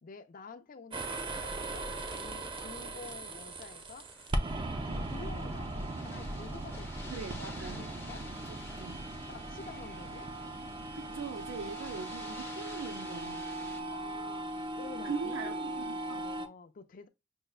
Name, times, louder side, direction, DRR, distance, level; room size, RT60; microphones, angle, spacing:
voice 1, 0.0-4.1 4.7-7.1 7.7-8.3 9.3-10.3 13.7-15.5 16.1-17.1, left 4 dB, 45° left, 0.5 m, -49 dB
sound 1, 0.9-16.5, right 2 dB, 25° right, 0.5 m, -38 dB
sound 2, 4.0-13.8, left 3 dB, 10° left, 0.7 m, -51 dB
voice 2, 7.1-7.9 8.5-9.0 9.9-10.0 10.9-13.5 15.0-16.3, right 5 dB, 85° right, 0.5 m, -41 dB
6.3 x 2.1 x 2.3 m
head